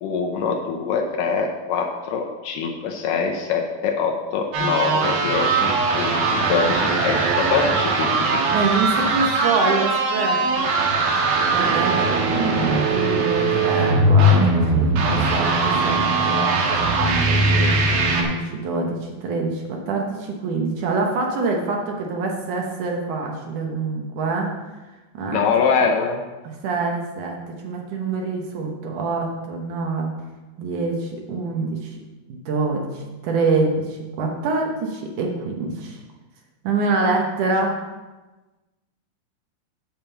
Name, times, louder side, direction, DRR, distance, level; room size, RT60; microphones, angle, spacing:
voice 1, 0.0-8.4 25.3-26.2, left 5 dB, 75° left, 3 dB, 2.2 m, -24 dB
sound 1, 4.5-18.2, right 2 dB, 85° right, 3.2 m, -20 dB
voice 2, 8.5-10.7 11.3-24.5 25.1-25.4 26.4-30.1 30.6-32.0 32.3-36.0 36.6-37.8, right 3 dB, 70° right, 1 dB, 2.3 m, -25 dB
9.0 x 5.2 x 7.1 m, 1.2 s
omnidirectional pair, 4.2 m